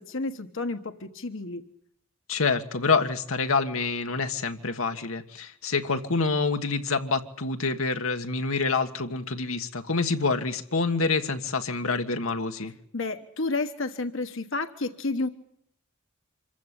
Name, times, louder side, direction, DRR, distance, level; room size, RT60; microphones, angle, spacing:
voice 1, 0.0-1.6 12.9-15.3, left 3 dB, 65° left, 7 dB, 1.4 m, -31 dB
voice 2, 2.3-12.7, left 4 dB, 85° left, 6 dB, 1.6 m, -27 dB
26.0 x 15.5 x 10.0 m, 0.72 s
head